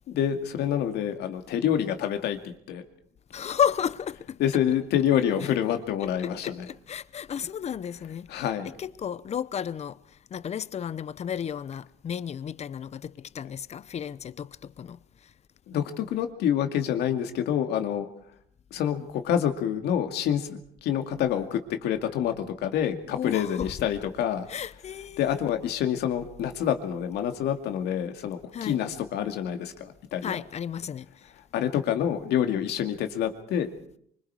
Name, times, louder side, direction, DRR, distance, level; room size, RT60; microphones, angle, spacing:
voice 1, 0.1-2.8 4.4-6.7 8.3-8.7 15.7-18.1 18.7-24.5 25.2-30.4 31.5-33.7, left 9 dB, 80° left, 2.3 m, -27 dB
voice 2, 3.3-4.4 6.2-10.0 10.3-14.5 14.8-15.0 23.1-23.7 24.5-25.2 28.5-28.8 30.2-31.1, left 8 dB, 40° left, 0.8 m, -32 dB
25.0 x 25.0 x 4.8 m
cardioid pair, 110°, 17 cm